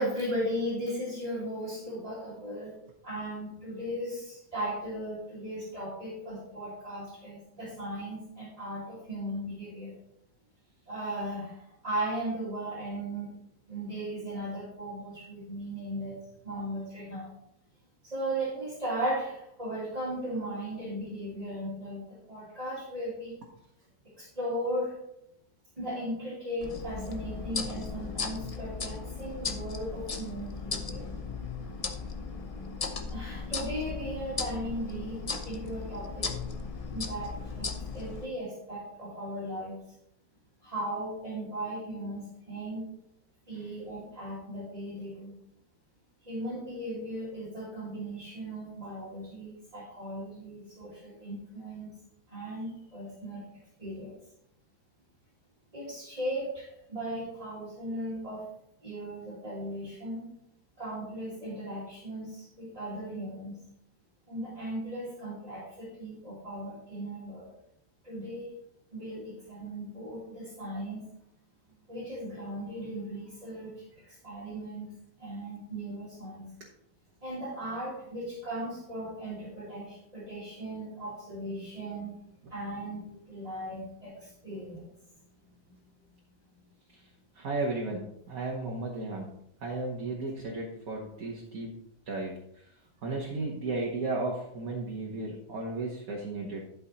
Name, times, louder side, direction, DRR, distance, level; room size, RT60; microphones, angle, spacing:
voice 1, 0.0-2.7 3.0-9.9 10.9-11.5 11.8-13.3 13.7-16.2 16.4-17.3 18.1-22.0 22.3-23.3 24.2-24.9 25.8-31.1 33.1-36.3 36.9-39.8 40.6-42.9 43.5-45.3 46.3-51.9 52.3-53.4 53.8-54.1 55.7-56.6 56.9-58.5 58.8-60.3 60.8-62.3 62.6-63.6 64.3-67.5 68.1-68.5 68.9-71.0 71.9-73.7 74.2-74.9 75.2-76.5 77.2-82.1 82.5-84.1 84.4-84.8, right 1 dB, 20° right, -7 dB, 2.3 m, -37 dB
sound 1, 26.6-38.2, left 4 dB, 40° left, 0.5 m, -37 dB
voice 2, 87.4-89.3 89.6-92.7 93.0-96.7, right 2 dB, 65° right, -2 dB, 1.7 m, -34 dB
11.5 x 5.3 x 4.1 m, 0.75 s
omnidirectional pair, 1.7 m